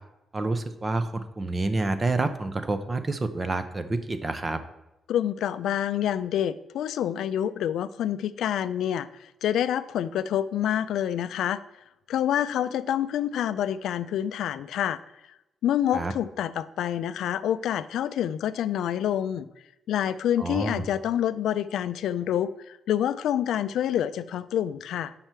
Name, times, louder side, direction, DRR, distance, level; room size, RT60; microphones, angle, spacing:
voice 1, 0.3-4.6 15.9-16.1 20.4-20.9, right 2 dB, 20° right, 11 dB, 0.5 m, -28 dB
voice 2, 5.1-11.6 12.1-15.0 15.6-19.5 19.9-25.1, left 10 dB, 85° left, 14 dB, 0.3 m, -27 dB
7.5 x 5.6 x 4.4 m, 0.91 s
cardioid pair, 160°, 0 cm